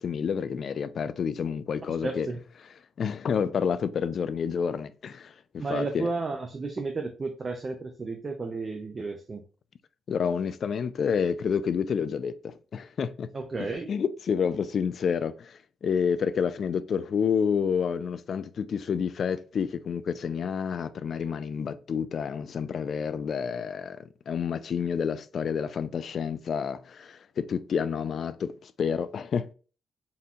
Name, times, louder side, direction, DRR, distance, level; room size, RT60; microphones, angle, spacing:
voice 1, 0.0-2.3 3.0-6.1 10.1-13.3 13.6-29.5, left 7 dB, 55° left, 0.4 m, -29 dB
voice 2, 2.0-2.4 5.6-9.4 13.3-13.9, right 3 dB, 30° right, 0.6 m, -33 dB
4.2 x 2.7 x 3.7 m
cardioid pair, 115°, 0 cm